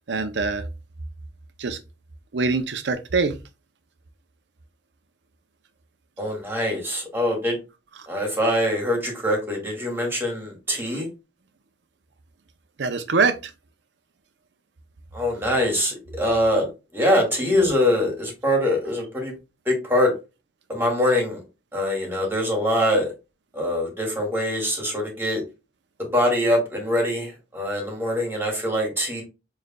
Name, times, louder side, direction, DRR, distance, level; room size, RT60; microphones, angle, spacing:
voice 1, 0.1-0.6 1.6-1.8 2.3-3.3 12.8-13.4, right 4 dB, 80° right, 0.6 m, -23 dB
voice 2, 6.2-7.6 8.1-11.1 15.1-19.3 19.7-20.1 20.7-21.4 21.7-23.1 23.5-25.4 26.0-29.2, left 1 dB, 15° right, 1.8 m, -23 dB
6.5 x 3.2 x 2.3 m
head